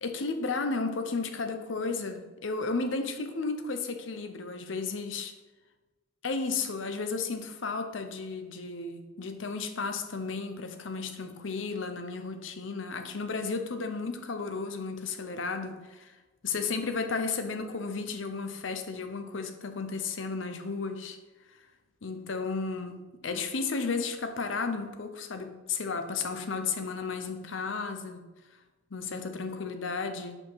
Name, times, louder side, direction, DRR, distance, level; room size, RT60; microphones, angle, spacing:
voice 1, 0.0-5.3 6.2-16.1 16.4-21.2 22.0-28.2 28.9-30.4, left 4 dB, 75° left, 7 dB, 0.7 m, -33 dB
5.3 x 4.5 x 5.6 m, 1.2 s
head